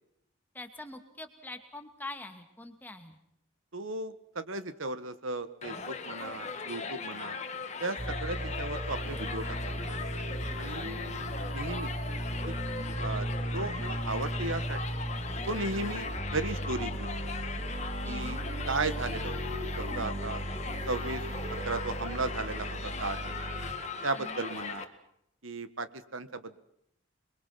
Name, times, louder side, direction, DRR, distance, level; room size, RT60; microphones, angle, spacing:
voice 1, 0.5-3.2 10.7-11.3 18.0-18.4 24.2-24.5, left 2 dB, 10° left, 5 dB, 2.4 m, -44 dB
voice 2, 3.7-7.4 7.8-9.6 9.8-10.0 10.6-11.0 11.5-11.9 12.5-12.6 13.0-13.3 13.5-15.0 15.4-17.2 18.0-18.4 18.7-19.4 19.7-20.4 20.9-21.2 21.6-23.4 24.0-24.9 25.4-26.6, right 3 dB, 80° right, 12 dB, 1.6 m, -35 dB
Crowd, 5.6-24.8, left 5 dB, 35° left, 1.9 m, -39 dB
sound 1, 8.0-23.7, right 1 dB, 30° right, 3.5 m, -36 dB
28.0 x 22.5 x 5.9 m, 0.75 s
head